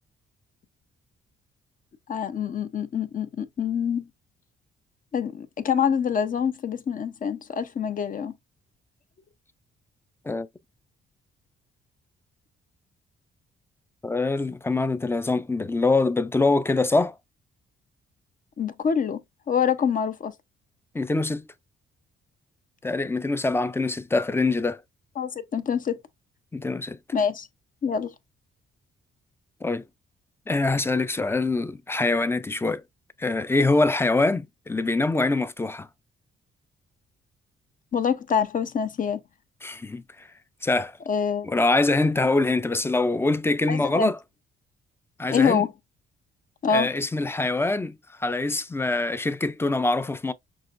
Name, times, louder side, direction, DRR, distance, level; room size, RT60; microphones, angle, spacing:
voice 1, 2.1-4.1 5.1-8.3 18.6-19.2 19.5-20.3 25.2-26.0 27.1-27.5 27.8-28.1 37.9-39.2 41.1-41.5 43.7-44.1 45.3-45.7 46.6-46.9, left 7 dB, 45° left, 0.7 m, -25 dB
voice 2, 14.0-17.1 20.9-21.4 22.8-24.8 26.5-27.0 29.6-29.8 30.5-32.8 33.2-35.9 39.6-40.3 40.6-41.0 41.4-44.2 45.2-45.7 46.7-50.3, left 3 dB, 10° left, 0.5 m, -24 dB
6.1 x 2.5 x 2.5 m
cardioid pair, 90°, 20 cm